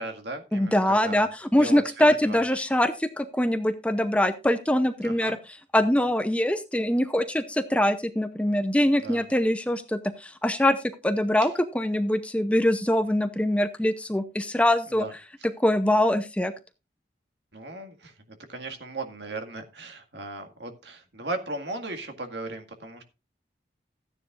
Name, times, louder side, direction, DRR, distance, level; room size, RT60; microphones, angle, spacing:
voice 1, 0.0-1.3 1.6-2.6 5.0-5.4 9.0-9.3 11.4-11.5 14.9-15.1 17.5-23.0, right 2 dB, 80° right, 5 dB, 2.0 m, -37 dB
voice 2, 0.5-5.4 5.7-10.8 11.0-15.0 15.6-16.5, left 1 dB, 5° left, 10 dB, 0.7 m, -23 dB
14.5 x 9.8 x 2.5 m, 0.28 s
head